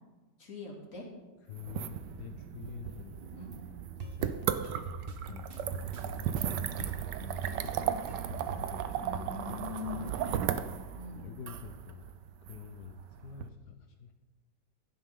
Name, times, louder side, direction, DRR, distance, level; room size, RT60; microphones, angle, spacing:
voice 1, 0.4-1.1 3.3-3.6 9.0-10.3 10.9-11.3, left 4 dB, 45° left, -2 dB, 3.0 m, -42 dB
voice 2, 1.5-3.2 4.0-4.4 5.3-6.8 7.1-8.7 10.2-10.5 11.1-12.1 12.4-14.1, left 7 dB, 65° left, 6 dB, 1.3 m, -47 dB
sound 1, 1.6-13.4, right 9 dB, 75° right, 1.3 m, -36 dB
sound 2, 4.0-9.3, right 2 dB, 35° right, 1.4 m, -42 dB
15.5 x 11.5 x 3.8 m, 1.2 s
omnidirectional pair, 1.9 m